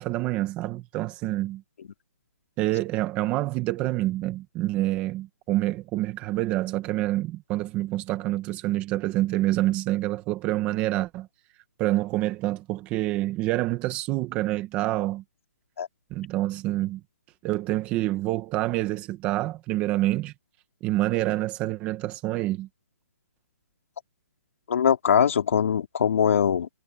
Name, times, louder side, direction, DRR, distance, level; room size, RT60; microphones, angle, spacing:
voice 1, 0.0-1.6 2.6-11.3 11.8-15.2 16.1-17.0 17.4-20.3 20.8-22.7, right 16 dB, 15° right, 1.1 m, -27 dB
voice 2, 24.7-26.7, left 8 dB, 50° left, 4.1 m, -22 dB
hypercardioid pair, 170°, 9 cm